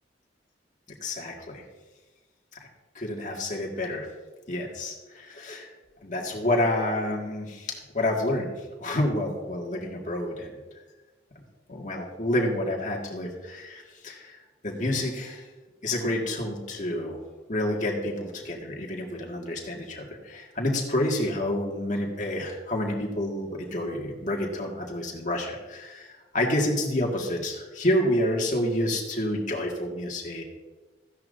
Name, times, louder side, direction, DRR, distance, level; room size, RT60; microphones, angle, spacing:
voice 1, 1.0-1.6 3.0-4.1 4.5-5.7 6.0-10.6 11.7-14.4 14.6-15.4 15.8-17.2 17.5-30.4, left 1 dB, 45° left, -1 dB, 1.8 m, -29 dB
14.5 x 10.5 x 2.6 m, 1.2 s
head